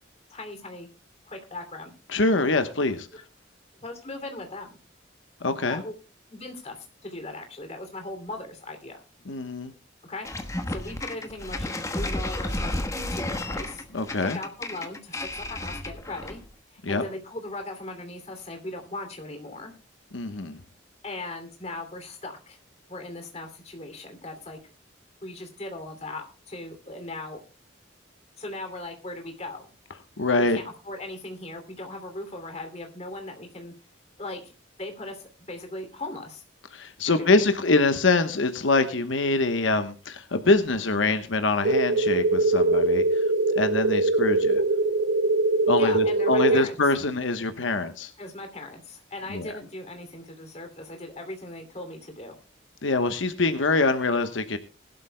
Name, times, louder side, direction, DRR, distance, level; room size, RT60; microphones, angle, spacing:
voice 1, 0.3-0.9 1.3-1.9 3.1-3.2 3.8-4.8 5.7-5.9 6.3-9.0 10.1-10.3 10.7-13.9 14.2-16.4 16.7-19.7 21.0-22.6 22.9-24.6 25.2-27.4 28.4-29.7 30.4-33.7 34.2-34.5 34.8-36.4 37.0-37.4 45.8-46.8 48.2-52.4, left 2 dB, 35° left, 5 dB, 2.7 m, -38 dB
voice 2, 2.1-3.1 5.4-5.8 9.3-9.7 13.9-14.4 16.8-17.0 20.1-20.6 30.2-30.6 36.7-43.2 43.6-44.6 45.7-48.1 49.3-49.6 52.8-54.6, left 3 dB, 85° left, 8 dB, 1.1 m, -24 dB
sound 1, 10.2-16.5, left 1 dB, 15° left, 1.2 m, -32 dB
sound 2, 41.6-46.6, right 2 dB, 65° right, 0.5 m, -22 dB
20.5 x 12.0 x 2.2 m, 0.35 s
head